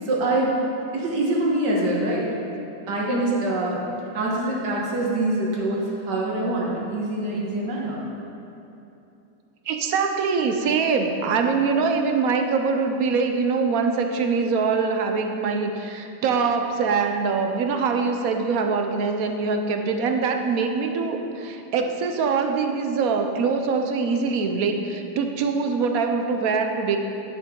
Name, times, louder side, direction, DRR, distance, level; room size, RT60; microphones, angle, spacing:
voice 1, 0.1-0.5 0.9-2.3 2.9-3.8 4.1-8.0, right 1 dB, 90° right, -3 dB, 2.0 m, -24 dB
voice 2, 9.7-27.0, right 5 dB, 65° right, 5 dB, 1.1 m, -23 dB
10.5 x 7.8 x 3.8 m, 2.9 s
omnidirectional pair, 1.8 m